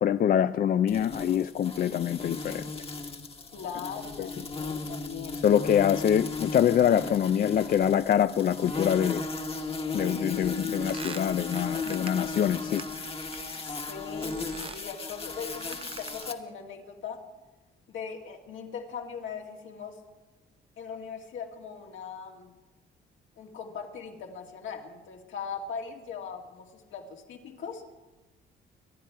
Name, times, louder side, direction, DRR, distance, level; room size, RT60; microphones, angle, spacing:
voice 1, 0.0-2.6 4.2-4.3 5.4-9.2 9.9-12.8, left 9 dB, 45° left, 12 dB, 0.4 m, -25 dB
sound 1, 0.9-16.3, left 3 dB, 30° left, 1.3 m, -36 dB
voice 2, 3.5-5.4 13.6-17.2 17.9-20.0 20.8-22.5 23.4-27.8, left 6 dB, 75° left, 2 dB, 2.1 m, -40 dB
sound 2, 10.3-13.8 14.2-14.9 15.5-16.5, right 5 dB, 30° right, 0.5 m, -45 dB
24.5 x 10.5 x 4.7 m, 1.2 s
cardioid pair, 90°, 20 cm